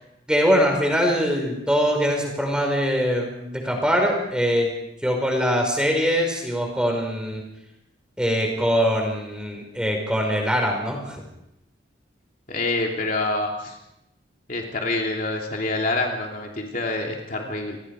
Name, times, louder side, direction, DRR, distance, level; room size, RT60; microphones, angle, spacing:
voice 1, 0.3-4.7 5.0-7.4 8.2-11.2, equal, 5° right, 2 dB, 5.3 m, -22 dB
voice 2, 12.5-13.8 14.5-17.8, left 2 dB, 45° left, 0 dB, 3.0 m, -26 dB
28.5 x 21.0 x 5.0 m, 0.84 s
head